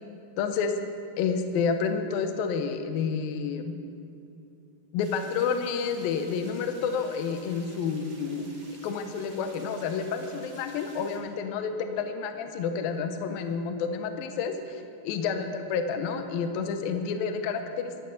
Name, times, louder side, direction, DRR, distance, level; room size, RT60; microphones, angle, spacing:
voice 1, 0.4-0.8 1.2-3.7 4.9-8.5 8.8-17.9, left 6 dB, 80° left, 7 dB, 2.1 m, -29 dB
sound 1, 5.0-11.2, right 2 dB, 50° right, 0.8 m, -53 dB
12.5 x 9.4 x 8.1 m, 2.6 s
omnidirectional pair, 5.2 m